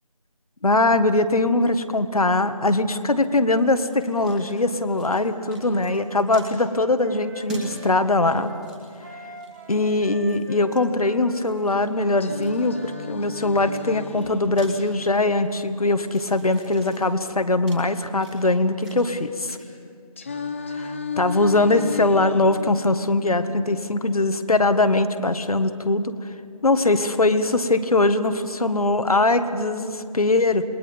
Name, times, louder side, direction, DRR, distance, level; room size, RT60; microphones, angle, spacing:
voice 1, 0.6-8.5 9.7-19.6 20.8-26.1 26.6-30.6, left 2 dB, 70° left, 10 dB, 1.7 m, -21 dB
sound 1, 3.5-4.5 4.8-5.2 5.5-6.5 7.5-7.7 8.1-9.7 10.3-10.8 11.4-12.8 13.4-15.6 15.9-19.2 19.4-19.6, right 2 dB, 5° right, 2.1 m, -44 dB
Wind instrument woodwind instrument, 5.1-13.1, right 2 dB, 30° right, 1.6 m, -42 dB
Singing, 12.2-16.2 20.2-24.2, left 5 dB, 20° left, 0.9 m, -35 dB
27.5 x 22.5 x 5.3 m, 2.6 s
figure-of-eight pair, 165°, 20 cm